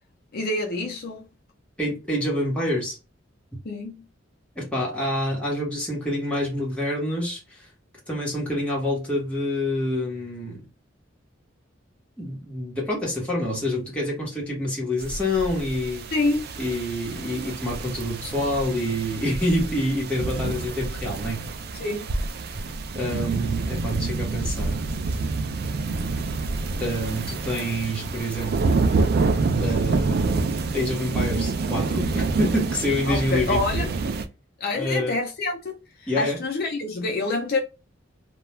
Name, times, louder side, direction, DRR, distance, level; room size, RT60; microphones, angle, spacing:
voice 1, 0.3-1.2 3.6-4.0 16.1-16.5 21.7-22.1 33.1-33.9 34.6-37.6, left 2 dB, 55° left, 0.5 m, -27 dB
voice 2, 1.8-3.0 4.6-7.7 8.1-10.6 12.2-16.0 16.6-21.4 22.5-22.6 22.9-24.8 26.8-28.8 29.6-30.5 30.7-33.9 34.7-35.1 36.1-36.4, left 1 dB, 5° left, 1.0 m, -27 dB
sound 1, 15.0-34.3, right 3 dB, 55° right, 0.3 m, -27 dB
2.3 x 2.2 x 3.0 m
head